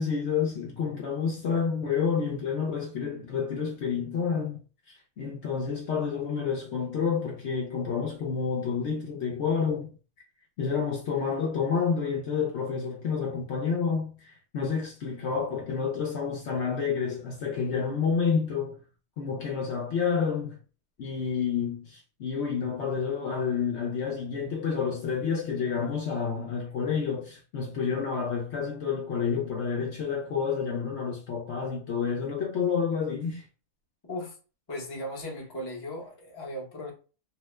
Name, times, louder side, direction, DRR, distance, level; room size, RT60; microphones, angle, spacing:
voice 1, 0.0-4.6 4.9-9.9 10.6-18.8 19.2-20.6 21.0-33.4, left 6 dB, 65° left, 0.8 m, -29 dB
voice 2, 34.7-36.9, left 1 dB, 25° left, 0.6 m, -37 dB
2.8 x 2.0 x 3.2 m
omnidirectional pair, 1.4 m